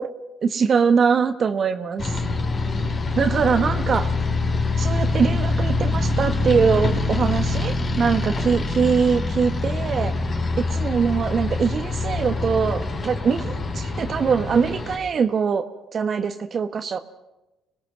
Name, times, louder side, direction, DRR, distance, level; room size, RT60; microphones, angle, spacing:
voice 1, 0.4-2.2 3.2-4.1 4.8-10.1 10.7-17.0, right 6 dB, 50° right, 7 dB, 1.3 m, -22 dB
sound 1, 2.0-15.0, left 3 dB, 40° left, 5.3 m, -25 dB
26.5 x 19.5 x 6.2 m, 0.99 s
hypercardioid pair, 55°, 0 cm